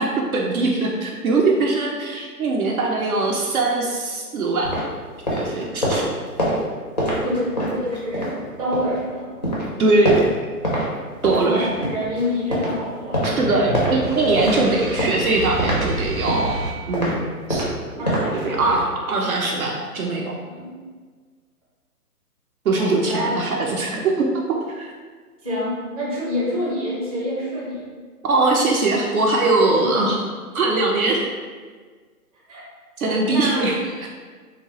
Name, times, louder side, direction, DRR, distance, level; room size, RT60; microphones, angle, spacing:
voice 1, 0.0-4.7 5.3-6.1 9.8-10.4 11.2-11.7 13.2-17.2 17.5-17.7 18.0-18.1 18.3-20.3 22.6-24.9 28.2-30.2 30.5-31.3 33.0-34.1, right 3 dB, 65° right, -1 dB, 0.5 m, -21 dB
sound 1, 4.6-9.0 9.4-10.9 11.2-18.9, equal, 30° left, 0.4 m, -26 dB
voice 2, 7.2-8.3 8.6-9.3 11.0-13.2 18.0-18.6 20.4-20.7 22.8-23.3 25.4-27.9 29.6-30.1 32.5-32.6 33.0-33.7, left 1 dB, 25° right, -6 dB, 0.6 m, -27 dB
sound 2, 13.4-17.3, right 2 dB, 90° right, 0.9 m, -31 dB
2.8 x 2.1 x 3.0 m, 1.5 s
hypercardioid pair, 140°, 47 cm